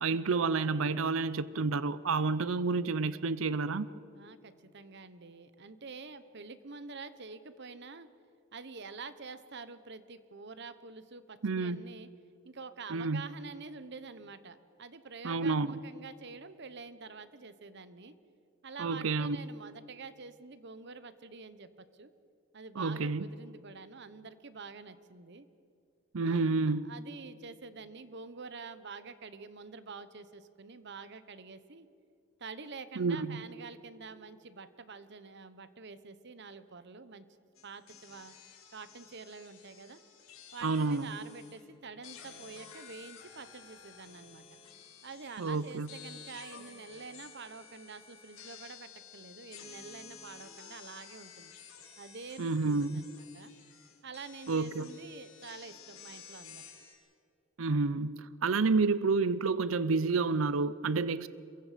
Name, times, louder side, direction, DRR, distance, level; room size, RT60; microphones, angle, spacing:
voice 1, 0.0-3.9 11.4-11.9 12.9-13.2 15.2-15.8 18.8-19.4 22.8-23.3 26.1-26.9 33.0-33.4 40.6-41.1 45.4-45.9 52.4-53.0 54.5-54.9 57.6-61.3, right 4 dB, 70° right, 0.6 m, -29 dB
voice 2, 4.1-8.1 8.5-12.1 12.4-18.1 18.6-22.1 22.5-25.5 26.2-31.9 32.4-37.3 37.6-38.3 38.7-40.0 40.5-44.4 45.0-51.5 52.0-53.5 54.0-56.6, right 4 dB, 55° right, 1.1 m, -47 dB
sound 1, 37.6-41.6 42.0-56.9, left 7 dB, 80° left, 4.6 m, -53 dB
28.0 x 23.0 x 5.2 m
head